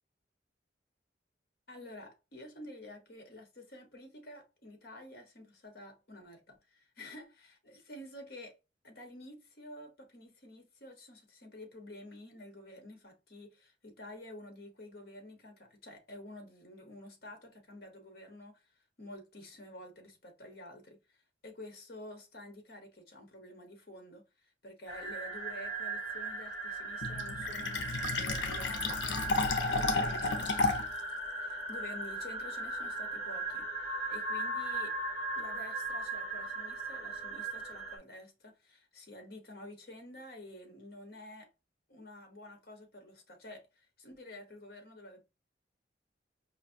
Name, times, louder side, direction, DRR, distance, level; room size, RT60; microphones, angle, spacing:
voice 1, 1.7-8.5 8.8-30.5 31.4-34.9 35.4-41.5 41.9-45.2, left 1 dB, 55° left, 1.1 m, -50 dB
sound 1, 24.9-38.0, right 2 dB, 20° right, 1.5 m, -38 dB
Fill (with liquid), 27.0-31.0, left 3 dB, 85° left, 0.6 m, -32 dB
4.9 x 2.6 x 2.7 m
head